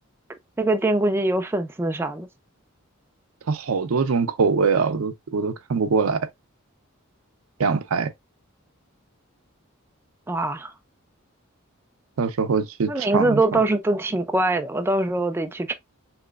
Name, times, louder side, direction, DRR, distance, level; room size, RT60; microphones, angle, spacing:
voice 1, 0.6-2.3 10.3-10.7 12.9-15.7, right 2 dB, 10° right, 0.3 m, -23 dB
voice 2, 3.5-6.2 7.6-8.1 12.2-13.6, right 5 dB, 80° right, 0.5 m, -23 dB
3.9 x 3.0 x 2.3 m
head